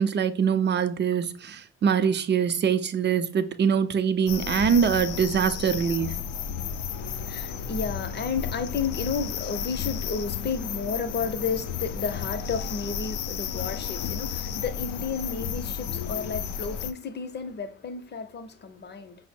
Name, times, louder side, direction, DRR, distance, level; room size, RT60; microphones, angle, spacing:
voice 1, 0.0-6.2, right 7 dB, 35° right, 0.5 m, -24 dB
sound 1, 4.3-16.9, left 7 dB, 80° left, 0.5 m, -33 dB
voice 2, 6.9-19.2, left 5 dB, 35° left, 0.6 m, -32 dB
5.2 x 2.0 x 4.3 m
cardioid pair, 90°, 30 cm